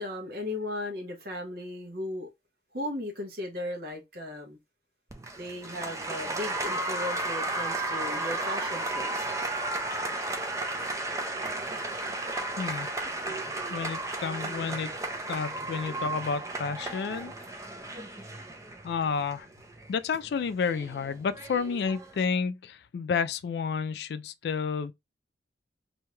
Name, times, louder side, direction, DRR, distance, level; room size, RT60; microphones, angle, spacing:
voice 1, 0.0-2.3 2.7-4.6 5.3-9.2, left 1 dB, 60° right, 1.0 m, -36 dB
Applause, 5.1-22.2, right 2 dB, 15° right, 0.4 m, -34 dB
voice 2, 12.6-12.9 13.7-14.9 15.3-17.3 18.8-19.5 19.9-24.9, left 5 dB, 65° left, 0.3 m, -30 dB
2.7 x 2.3 x 3.0 m
head